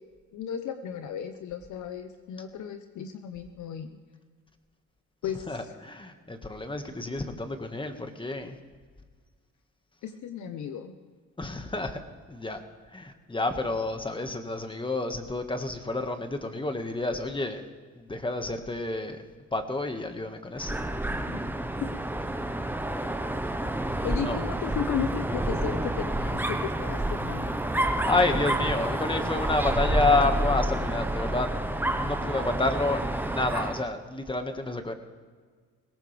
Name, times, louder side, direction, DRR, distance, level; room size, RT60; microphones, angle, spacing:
voice 1, 0.3-3.9 5.2-5.7 10.0-10.9 21.3-21.4 21.8-21.9 24.0-27.6, left 8 dB, 75° left, 8 dB, 1.0 m, -35 dB
voice 2, 5.5-8.6 11.4-12.0 12.3-12.6 12.9-17.6 17.9-19.2 19.5-20.8 24.2-24.4 28.0-31.5 31.9-34.9, left 2 dB, 15° left, 6 dB, 1.8 m, -29 dB
Dog, 20.6-33.9, right 1 dB, 5° right, 1.1 m, -29 dB
21.0 x 18.0 x 3.5 m, 1.6 s
cardioid pair, 90°, 30 cm